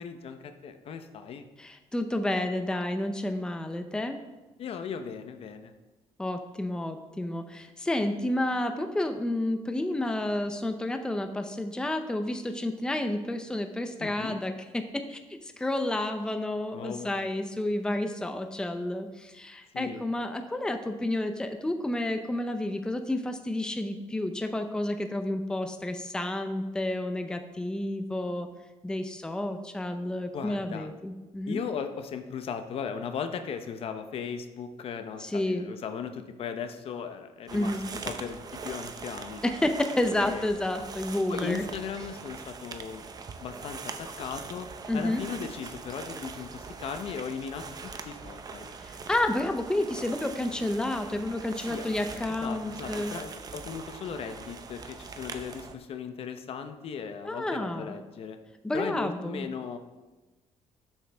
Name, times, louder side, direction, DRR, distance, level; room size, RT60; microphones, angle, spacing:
voice 1, 0.0-1.5 4.6-5.7 14.0-14.4 16.7-17.4 19.7-20.1 30.3-30.9 31.5-39.4 40.2-40.5 41.3-43.1 43.4-44.7 44.9-48.8 51.6-58.4 58.7-59.8, left 6 dB, 55° left, 8 dB, 0.9 m, -37 dB
voice 2, 1.6-4.2 6.2-28.5 28.8-31.6 35.2-35.6 37.5-37.8 39.4-41.7 44.9-45.2 48.8-53.2 57.2-57.9 58.6-59.5, left 1 dB, 5° left, 6 dB, 0.7 m, -30 dB
sound 1, 37.5-55.8, right 5 dB, 35° right, 0.8 m, -42 dB
12.5 x 7.4 x 3.5 m, 1.2 s
cardioid pair, 125°, 11 cm